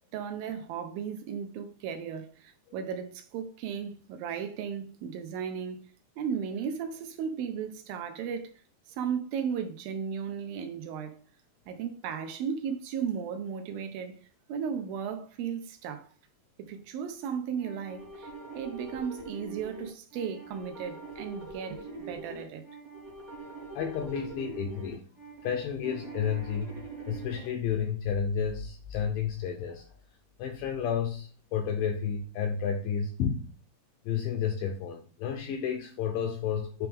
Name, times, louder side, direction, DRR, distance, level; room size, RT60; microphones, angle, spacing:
voice 1, 0.1-5.8 6.2-8.5 9.0-11.2 11.7-14.2 14.5-16.1 16.6-22.7, right 7 dB, 80° right, 2.5 m, -35 dB
sound 1, 17.6-27.5, right 3 dB, 35° right, 1.1 m, -43 dB
voice 2, 23.7-25.1 25.4-26.7 27.1-29.8 30.4-33.5 34.1-36.9, left 7 dB, 80° left, 2.1 m, -31 dB
8.8 x 3.1 x 3.5 m
omnidirectional pair, 4.3 m